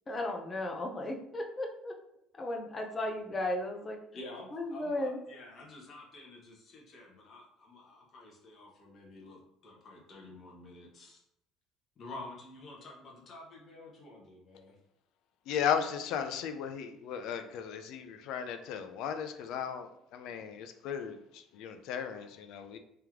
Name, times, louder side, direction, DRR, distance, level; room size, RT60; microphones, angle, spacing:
voice 1, 0.1-1.9 2.4-4.0 4.5-5.2, left 1 dB, 20° left, 2 dB, 0.6 m, -35 dB
voice 2, 4.1-11.2 12.0-14.7, left 2 dB, 35° left, -3 dB, 1.1 m, -49 dB
voice 3, 15.5-22.8, left 8 dB, 65° left, 8 dB, 0.4 m, -36 dB
3.4 x 3.0 x 3.6 m, 0.78 s
cardioid pair, 160°, 0 cm